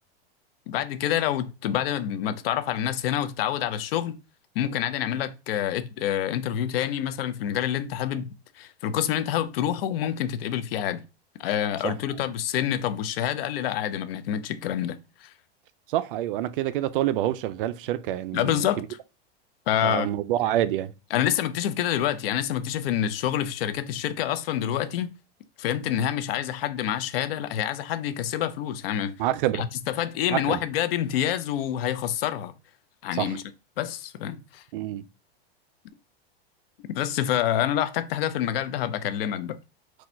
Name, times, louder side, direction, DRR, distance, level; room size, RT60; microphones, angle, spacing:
voice 1, 0.7-4.2 4.5-8.3 8.6-11.0 11.4-15.3 18.3-18.8 19.7-20.1 21.1-25.1 25.6-29.1 29.5-29.7 30.0-32.5 33.0-33.4 33.8-34.6 36.9-39.6, left 10 dB, 65° left, 0.6 m, -27 dB
voice 2, 15.9-18.9 19.8-20.9 29.2-29.6 30.3-30.6 33.1-33.4 34.7-35.1, right 13 dB, 55° right, 0.4 m, -27 dB
4.2 x 2.3 x 4.4 m
supercardioid pair, 150°, 32 cm